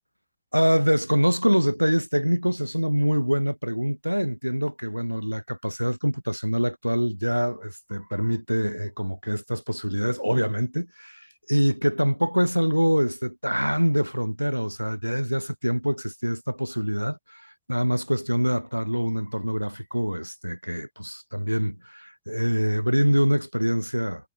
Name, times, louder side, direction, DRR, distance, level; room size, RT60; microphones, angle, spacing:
voice 1, 0.5-24.3, equal, 90° right, 1.9 m, -25 dB
figure-of-eight pair, 90°, 0 cm